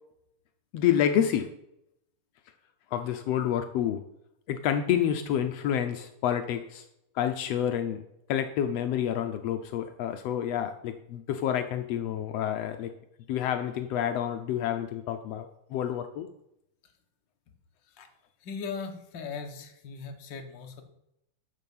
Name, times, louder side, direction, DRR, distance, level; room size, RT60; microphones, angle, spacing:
voice 1, 0.7-1.5 2.9-4.0 4.5-6.8 7.1-8.0 8.3-12.9 13.3-16.3, left 10 dB, 90° left, 7 dB, 1.4 m, -28 dB
voice 2, 18.4-20.8, left 5 dB, 55° left, 4 dB, 1.3 m, -38 dB
12.5 x 7.0 x 5.4 m, 0.82 s
omnidirectional pair, 3.8 m